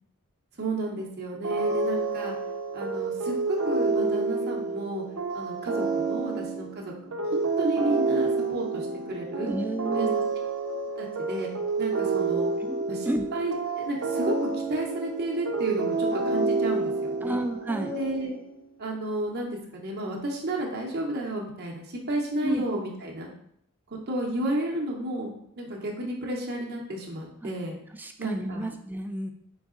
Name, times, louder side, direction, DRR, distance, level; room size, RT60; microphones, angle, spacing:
voice 1, 0.6-2.4 2.7-5.0 5.3-9.5 9.9-10.1 11.0-11.5 11.8-12.5 12.9-17.4 17.9-18.3 18.8-23.3 23.9-27.8 28.2-28.7, right 1 dB, 50° right, -1 dB, 0.9 m, -32 dB
sound 1, 1.4-18.6, right 3 dB, 85° right, 0.7 m, -29 dB
voice 2, 9.5-10.2 12.6-12.8 13.1-13.3 17.2-17.9 22.4-22.6 27.4-27.5 28.0-29.3, right 1 dB, 10° right, 5 dB, 0.4 m, -31 dB
4.0 x 3.5 x 3.7 m, 0.70 s
head